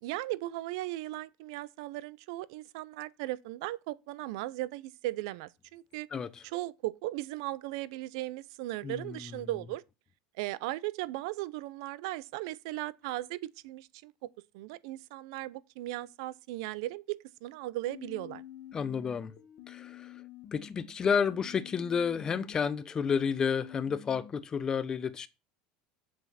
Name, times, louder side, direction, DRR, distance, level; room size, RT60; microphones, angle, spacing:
voice 1, 0.0-6.1 6.4-9.8 10.4-14.3 14.5-18.4, right 17 dB, 75° right, 0.6 m, -37 dB
voice 2, 6.1-6.4 8.8-9.3 18.7-19.3 19.7-20.2 20.5-25.3, left 6 dB, 25° left, 0.7 m, -31 dB
sound 1, 17.9-20.9 21.3-24.3, left 11 dB, 50° left, 1.8 m, -49 dB
8.0 x 7.5 x 4.2 m
cardioid pair, 145°, 3 cm